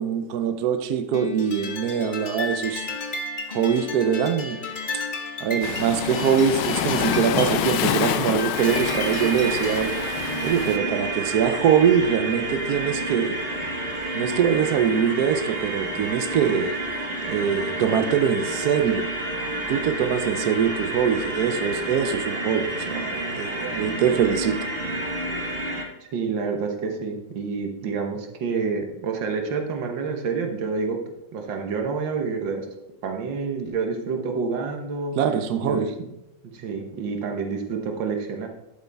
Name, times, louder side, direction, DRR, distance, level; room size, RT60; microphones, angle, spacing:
voice 1, 0.0-2.9 3.5-4.6 4.9-5.0 5.4-9.9 10.4-13.4 14.1-16.7 17.3-19.1 19.7-24.6 35.1-35.9, right 8 dB, 65° right, 8 dB, 1.1 m, -23 dB
sound 1, 1.1-10.0, left 4 dB, 35° left, 0.9 m, -33 dB
Waves surf, 5.6-10.8, left 10 dB, 75° left, 1.3 m, -27 dB
sound 2, 8.6-25.8, right 1 dB, 35° right, 1.2 m, -29 dB
voice 2, 26.0-31.0 31.3-32.7 33.0-35.2 35.6-36.1 36.4-38.5, right 5 dB, 80° right, 3 dB, 1.9 m, -28 dB
11.0 x 8.2 x 3.5 m, 0.90 s
omnidirectional pair, 2.0 m